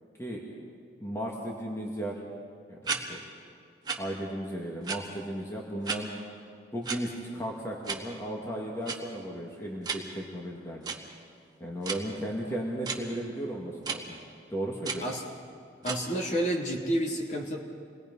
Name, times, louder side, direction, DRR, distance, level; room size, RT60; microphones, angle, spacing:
voice 1, 1.0-2.2 2.7-2.8 3.1-3.2 4.0-6.1 6.7-10.9 11.6-14.2 14.5-15.0, right 1 dB, 15° left, -2 dB, 2.2 m, -35 dB
sound 1, 2.8-3.0 3.8-4.0 4.8-5.0 5.8-6.0 6.8-7.0 7.8-8.0 8.8-8.9 9.8-10.0 10.8-11.0 11.8-12.0 12.8-13.0 13.8-14.0 14.8-15.0 15.8-16.0, right 5 dB, 25° right, 1.8 m, -32 dB
voice 2, 15.8-17.6, right 1 dB, 40° left, -1 dB, 3.2 m, -29 dB
28.0 x 20.5 x 5.6 m, 2.3 s
head